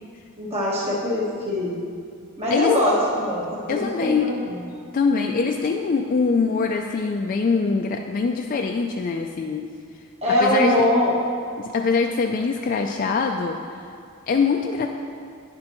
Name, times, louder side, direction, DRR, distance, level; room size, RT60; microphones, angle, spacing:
voice 1, 0.4-1.8 2.4-3.4 3.7-4.6 10.2-11.1, left 1 dB, 30° right, -7 dB, 1.2 m, -22 dB
voice 2, 3.7-4.3 4.9-9.7 10.4-10.9 11.6-13.9 14.3-14.9, left 4 dB, 40° left, 2 dB, 0.3 m, -23 dB
9.8 x 7.4 x 3.0 m, 2.3 s
head